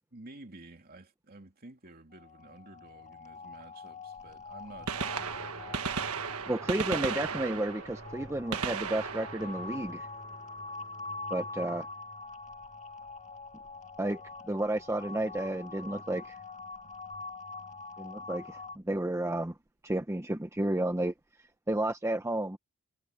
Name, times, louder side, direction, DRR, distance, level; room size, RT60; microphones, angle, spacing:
voice 1, 0.1-5.9, right 2 dB, 45° right, 3.0 m, -51 dB
sound 1, 2.1-18.8, left 3 dB, 35° left, 1.7 m, -44 dB
Gunshot gunfire, 4.2-4.3 4.7-10.6 12.5-12.7 13.7-13.8 15.4-15.5 16.9-17.0 17.1-17.2, right 5 dB, 80° right, 1.4 m, -36 dB
sound 2, 4.6-14.1, equal, 15° left, 4.3 m, -55 dB
voice 2, 6.5-10.1 11.3-11.9 14.0-14.2 14.5-16.4 18.0-19.5 19.8-21.1 21.7-22.6, right 1 dB, 10° right, 0.7 m, -32 dB
head